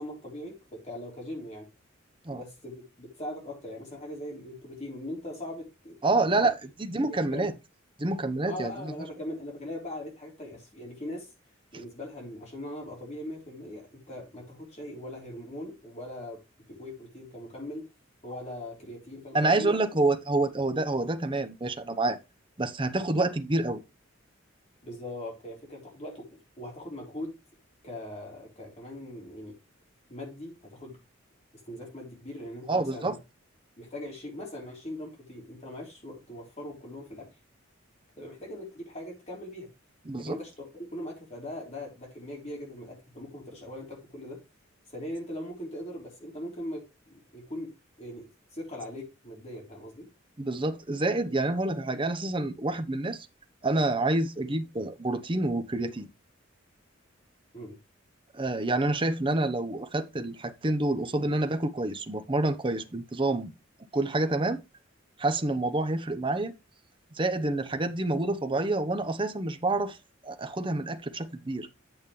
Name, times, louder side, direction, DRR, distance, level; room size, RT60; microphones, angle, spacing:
voice 1, 0.0-1.7 2.3-6.5 7.0-7.5 8.4-11.3 11.7-16.4 16.7-17.9 18.2-19.8 24.8-27.3 27.8-29.6 30.1-31.0 31.7-33.2 33.8-37.3 38.2-39.7 40.2-44.4 44.9-47.7 48.0-50.1 57.5-57.8, left 1 dB, 35° left, 3.6 m, -40 dB
voice 2, 6.0-7.5 8.0-8.9 19.3-22.2 22.6-23.8 32.7-33.2 40.1-40.4 50.4-53.3 53.6-56.1 58.3-63.5 63.9-64.6 65.2-66.5 67.1-70.0 70.2-71.7, right 2 dB, 25° right, 0.9 m, -28 dB
8.9 x 7.2 x 3.2 m
head